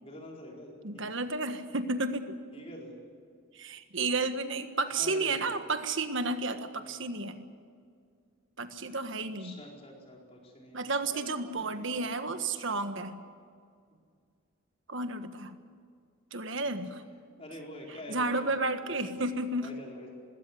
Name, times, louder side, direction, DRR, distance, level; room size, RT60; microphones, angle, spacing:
voice 1, 0.0-1.0 2.5-3.0 5.0-5.6 6.7-6.9 9.2-12.0 16.6-16.9 17.4-18.6 18.8-19.1 19.6-20.1, left 1 dB, 25° left, -1 dB, 4.6 m, -46 dB
voice 2, 0.8-2.4 3.5-7.4 8.6-9.5 10.7-13.2 14.9-15.6 16.3-17.0 18.1-19.7, right 3 dB, 60° right, 8 dB, 1.5 m, -32 dB
20.5 x 17.0 x 9.9 m, 2.2 s
head